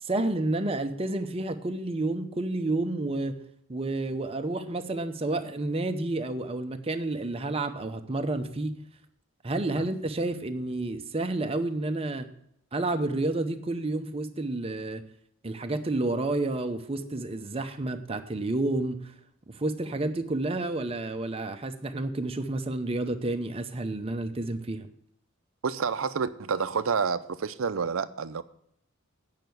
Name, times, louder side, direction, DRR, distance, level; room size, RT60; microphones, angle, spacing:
voice 1, 0.0-3.4 3.7-8.7 9.4-12.3 12.7-15.0 15.4-19.1 19.5-24.9, right 2 dB, 30° right, 0.7 m, -30 dB
voice 2, 25.6-28.4, right 5 dB, 70° right, 0.6 m, -29 dB
9.0 x 5.7 x 7.8 m
head